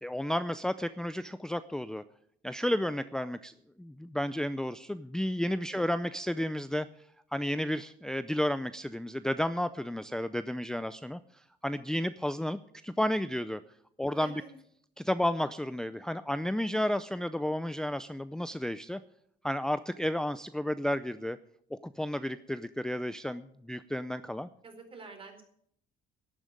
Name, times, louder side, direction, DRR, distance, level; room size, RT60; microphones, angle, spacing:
voice 1, 0.0-2.0 2.4-6.9 7.3-11.2 11.6-13.6 14.0-14.3 15.0-19.0 19.4-21.4 21.7-24.5, left 1 dB, 5° left, 13 dB, 0.5 m, -32 dB
voice 2, 14.1-14.6 24.6-25.4, right 4 dB, 30° right, 4 dB, 4.2 m, -48 dB
12.0 x 8.9 x 9.3 m, 0.68 s
cardioid pair, 110°, 17 cm